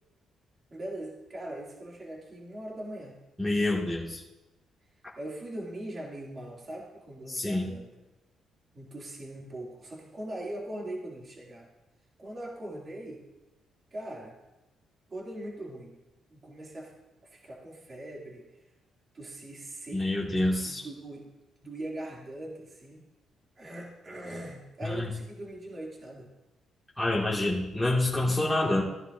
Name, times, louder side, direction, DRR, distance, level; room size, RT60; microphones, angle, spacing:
voice 1, 0.7-3.2 5.2-7.9 8.7-11.7 12.2-13.2 13.9-14.4 15.1-16.0 16.3-16.9 17.2-18.5 19.1-21.2 21.6-23.0 23.6-26.3, right 1 dB, 35° right, -3 dB, 2.6 m, -41 dB
voice 2, 3.4-4.2 7.3-7.7 19.9-20.9 24.8-25.1 27.0-28.8, left 2 dB, 5° left, -6 dB, 2.1 m, -27 dB
16.0 x 11.0 x 2.7 m, 1.0 s
cardioid pair, 90°, 0 cm